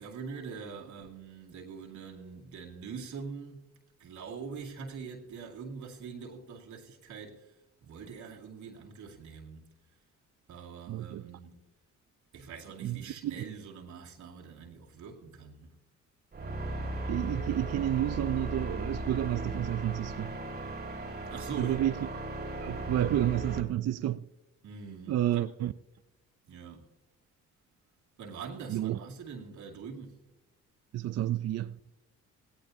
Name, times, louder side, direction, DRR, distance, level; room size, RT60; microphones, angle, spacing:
voice 1, 0.0-3.7 4.0-7.5 7.8-9.7 10.5-11.6 12.3-15.8 21.3-21.9 24.6-25.5 26.5-26.9 28.2-30.2, right 5 dB, 75° right, 2.2 m, -43 dB
voice 2, 10.9-11.3 12.8-13.4 17.1-20.4 21.6-22.1 22.6-24.2 25.1-25.7 28.7-29.0 30.9-31.8, right 12 dB, 55° right, 0.5 m, -30 dB
sound 1, 16.3-23.6, right 1 dB, 30° right, 2.2 m, -37 dB
17.5 x 16.5 x 2.7 m
cardioid pair, 90°, 30 cm